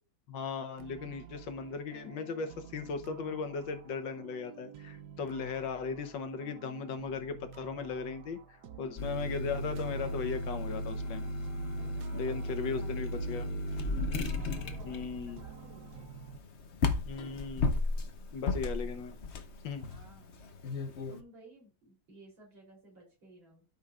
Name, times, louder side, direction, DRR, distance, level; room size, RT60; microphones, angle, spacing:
voice 1, 0.3-8.4 8.8-11.2 12.1-13.5 14.8-15.4 17.0-17.8 18.3-19.2 19.6-19.9, left 5 dB, 75° left, 7 dB, 1.7 m, -37 dB
sound 1, 0.8-16.4, right 7 dB, 65° right, 1.2 m, -50 dB
sound 2, 9.0-21.2, left 2 dB, 50° left, 0.9 m, -35 dB
voice 2, 11.7-13.8 14.3-16.1 19.8-20.4 21.1-23.7, right 2 dB, 85° right, -2 dB, 4.3 m, -57 dB
13.0 x 5.6 x 2.4 m, 0.33 s
omnidirectional pair, 2.1 m